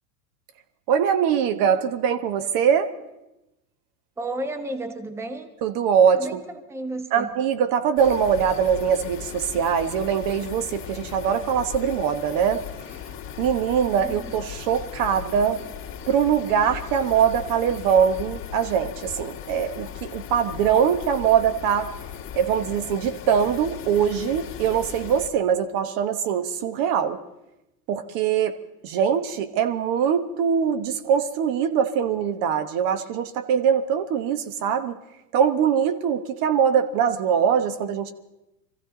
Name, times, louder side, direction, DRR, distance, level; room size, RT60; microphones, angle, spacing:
voice 1, 0.9-2.9 5.6-6.4 7.1-12.6 13.4-15.6 16.1-21.9 22.3-27.2 27.9-28.6 28.8-35.0 35.3-38.1, right 8 dB, 45° right, 10 dB, 1.2 m, -22 dB
voice 2, 4.2-5.5 6.1-7.3 14.0-14.3, right 2 dB, 5° right, 9 dB, 0.9 m, -33 dB
sound 1, 8.0-25.3, left 9 dB, 25° left, 2.3 m, -38 dB
22.5 x 15.0 x 4.0 m, 0.92 s
hypercardioid pair, 105°, 47 cm